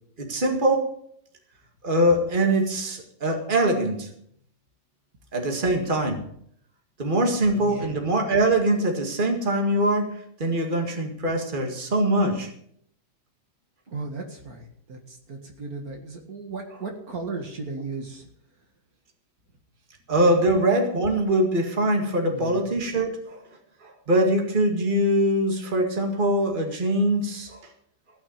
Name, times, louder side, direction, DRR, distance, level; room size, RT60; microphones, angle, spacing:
voice 1, 0.2-0.9 1.8-4.1 5.3-6.2 7.0-12.5 20.1-23.4 23.8-27.6, right 1 dB, 30° right, 3 dB, 2.2 m, -23 dB
voice 2, 7.5-8.0 13.9-18.3 22.3-22.8, right 3 dB, 65° right, 3 dB, 2.3 m, -36 dB
16.0 x 6.1 x 8.9 m, 0.68 s
omnidirectional pair, 1.7 m